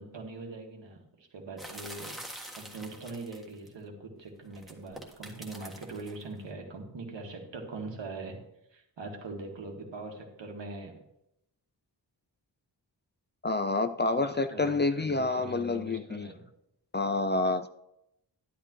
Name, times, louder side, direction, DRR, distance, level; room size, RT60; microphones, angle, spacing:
voice 1, 0.0-8.4 8.7-10.9 14.0-16.4, right 3 dB, 85° right, 1 dB, 1.8 m, -42 dB
sound 1, 1.6-3.7 4.5-6.2, right 1 dB, ahead, 1.5 m, -45 dB
voice 2, 13.4-16.3 16.9-17.7, left 3 dB, 25° left, 10 dB, 0.3 m, -28 dB
11.0 x 11.0 x 3.1 m, 0.84 s
wide cardioid pair, 100°, 43 cm